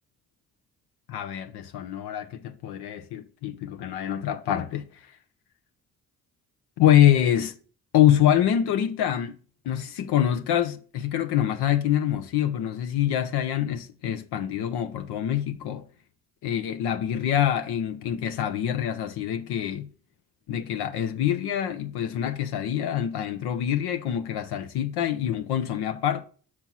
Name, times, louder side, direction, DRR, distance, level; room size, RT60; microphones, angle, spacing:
voice 1, 1.1-5.1 6.8-7.5 7.9-9.4 9.6-15.9 16.4-19.9 20.5-26.2, left 10 dB, 85° left, 0.7 m, -25 dB
6.1 x 4.4 x 5.4 m
cardioid pair, 65°, 38 cm